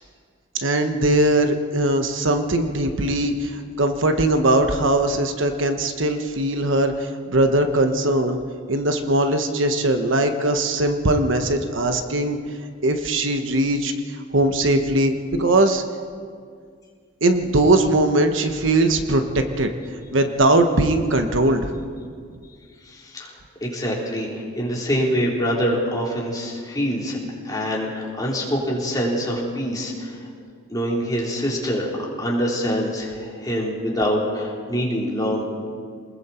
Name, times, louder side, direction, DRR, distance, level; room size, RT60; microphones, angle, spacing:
voice 1, 0.5-8.4 8.7-12.4 12.8-15.8 17.2-19.7 20.1-21.8, right 1 dB, 70° right, 6 dB, 1.3 m, -20 dB
voice 2, 22.8-30.3 30.7-35.4, equal, 20° left, -4 dB, 4.1 m, -25 dB
28.5 x 20.5 x 4.5 m, 2.1 s
head